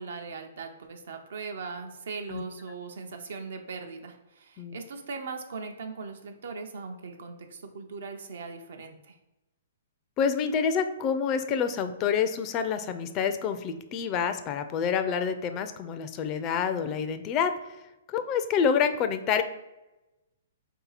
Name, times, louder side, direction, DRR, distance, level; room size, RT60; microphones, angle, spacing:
voice 1, 0.0-9.2, right 4 dB, 70° right, 5 dB, 0.6 m, -39 dB
voice 2, 10.2-17.6 18.1-19.4, left 7 dB, 30° left, 9 dB, 0.4 m, -27 dB
4.0 x 2.8 x 3.9 m, 1.0 s
hypercardioid pair, 135°, 0 cm